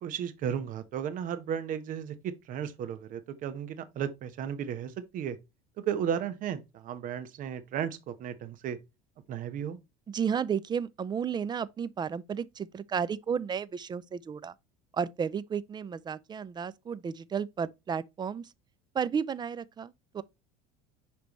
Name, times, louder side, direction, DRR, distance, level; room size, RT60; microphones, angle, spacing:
voice 1, 0.0-5.4 5.9-8.8 9.3-9.8, right 8 dB, 50° right, 1.2 m, -34 dB
voice 2, 10.1-14.5 14.9-18.5 18.9-20.2, right 7 dB, 25° right, 0.5 m, -33 dB
10.0 x 3.4 x 3.0 m
supercardioid pair, 105°, 18 cm